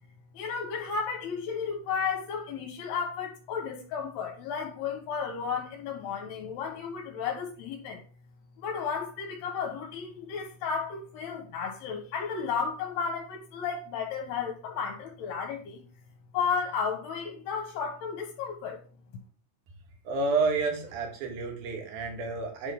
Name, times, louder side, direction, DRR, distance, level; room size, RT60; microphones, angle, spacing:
voice 1, 0.3-8.0 8.6-15.8 16.3-18.8, left 6 dB, 70° left, 2.9 m, -33 dB
voice 2, 20.0-22.7, right 4 dB, 55° right, 2.7 m, -30 dB
10.0 x 3.7 x 5.1 m
omnidirectional pair, 5.2 m